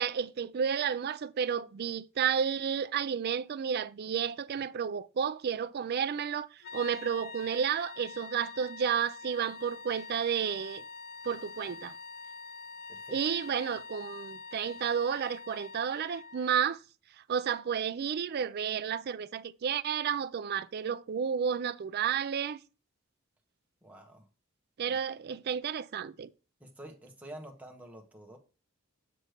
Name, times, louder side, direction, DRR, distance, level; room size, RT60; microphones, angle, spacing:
voice 1, 0.0-6.5 6.7-10.8 11.2-11.9 13.1-16.8 17.3-22.6 24.8-26.3, right 7 dB, 50° right, 0.4 m, -31 dB
sound 1, 6.6-16.6, left 4 dB, 50° left, 0.4 m, -46 dB
voice 2, 23.8-24.3 24.9-25.0 26.6-28.4, right 1 dB, 5° right, 1.1 m, -48 dB
7.8 x 3.1 x 4.9 m
head